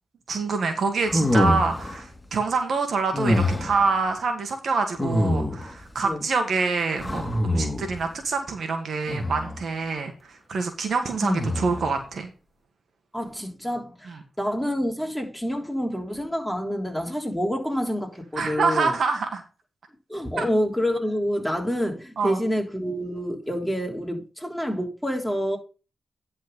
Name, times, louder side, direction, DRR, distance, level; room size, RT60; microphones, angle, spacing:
voice 1, 0.3-12.3 14.1-14.2 18.4-19.4 20.4-20.5 22.2-22.4, right 4 dB, 70° right, 1.6 m, -26 dB
sound 1, 1.1-2.0 3.1-3.8 5.0-5.8 7.0-8.0 9.1-9.6 11.2-11.9, left 1 dB, 20° left, 2.5 m, -25 dB
voice 2, 13.1-18.9 20.1-25.6, equal, ahead, 3.4 m, -27 dB
10.5 x 4.3 x 5.4 m
supercardioid pair, 45°, 0 cm